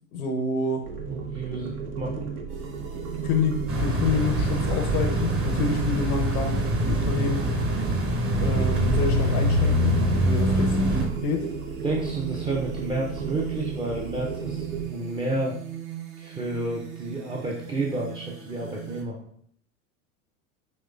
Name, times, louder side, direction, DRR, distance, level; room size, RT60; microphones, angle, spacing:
voice 1, 0.1-0.9 3.2-7.5 8.4-11.5, left 4 dB, 80° left, 4 dB, 0.7 m, -28 dB
sound 1, 0.8-14.9, right 5 dB, 80° right, 0.8 m, -35 dB
voice 2, 1.1-2.3 10.5-10.6 11.8-15.6 16.2-19.2, right 2 dB, 15° right, -2 dB, 0.5 m, -31 dB
sound 2, 2.5-19.0, right 11 dB, 65° right, 1.2 m, -39 dB
sound 3, 3.7-11.1, equal, 30° right, 0.9 m, -24 dB
5.3 x 3.0 x 2.4 m, 0.65 s
hypercardioid pair, 85°, 43 cm